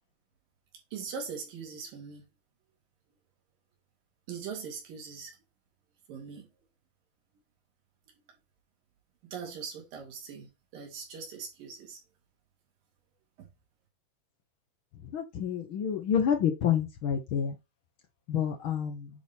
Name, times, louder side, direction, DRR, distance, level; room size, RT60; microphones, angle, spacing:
voice 1, 0.9-2.2 4.3-5.4 6.1-6.5 9.2-12.0 13.4-13.5, right 6 dB, 80° right, 4.0 m, -41 dB
voice 2, 15.1-17.5 18.3-19.1, left 8 dB, 85° left, 1.1 m, -28 dB
9.3 x 4.2 x 3.5 m
omnidirectional pair, 3.9 m